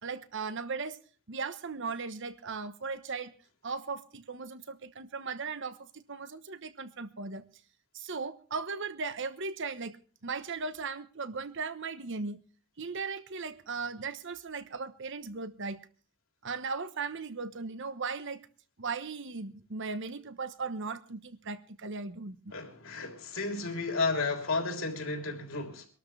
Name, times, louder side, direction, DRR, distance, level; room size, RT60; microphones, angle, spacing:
voice 1, 0.0-1.0 1.3-3.3 3.6-7.5 7.9-10.0 10.2-12.4 12.8-15.9 16.4-18.5 18.8-22.5, right 4 dB, 60° right, 1.1 m, -37 dB
voice 2, 22.5-25.9, left 3 dB, 65° left, 3.5 m, -32 dB
24.5 x 13.0 x 3.3 m
head